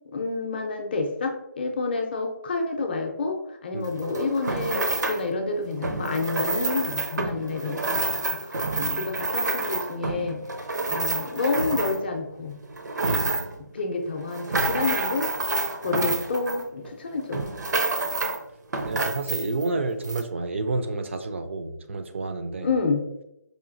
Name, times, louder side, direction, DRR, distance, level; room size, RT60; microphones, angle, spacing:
voice 1, 0.1-10.4 10.9-12.6 13.7-15.3 15.8-17.4 22.6-23.0, left 3 dB, 35° left, 3 dB, 0.5 m, -29 dB
sound 1, 3.8-5.3 5.8-12.2 12.6-13.6 14.1-17.0 17.3-18.4 18.7-19.7 20.0-20.2, right 3 dB, 80° right, 0.7 m, -28 dB
voice 2, 13.0-13.5 15.8-16.0 18.8-22.7, right 3 dB, 40° right, 7 dB, 0.3 m, -30 dB
4.9 x 2.7 x 2.5 m, 0.84 s
hypercardioid pair, 165°, 10 cm